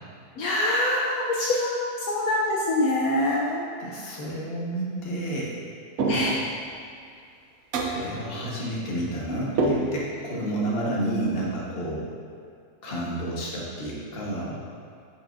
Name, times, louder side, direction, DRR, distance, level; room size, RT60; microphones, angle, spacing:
voice 1, 0.4-3.7 6.1-6.4, left 1 dB, 70° left, -3 dB, 1.2 m, -24 dB
voice 2, 3.8-5.5 6.0-6.2 7.8-12.1 12.8-14.6, right 1 dB, 40° left, -5 dB, 1.4 m, -30 dB
sound 1, 6.0-6.6 7.7-8.1 9.6-10.3, right 2 dB, 70° right, 1.1 m, -26 dB
9.5 x 6.0 x 2.6 m, 2.3 s
omnidirectional pair, 1.7 m